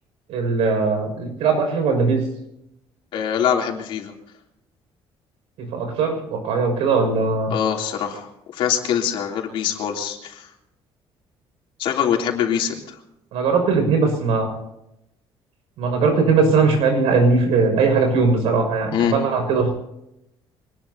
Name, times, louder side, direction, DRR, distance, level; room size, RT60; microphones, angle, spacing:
voice 1, 0.3-2.2 5.6-7.5 13.3-14.5 15.8-19.7, right 4 dB, 85° right, 4 dB, 6.2 m, -19 dB
voice 2, 3.1-4.1 7.5-10.5 11.8-12.9 18.9-19.2, left 8 dB, 60° left, 1 dB, 3.2 m, -23 dB
25.0 x 19.5 x 2.9 m, 0.84 s
cardioid pair, 175°, 10 cm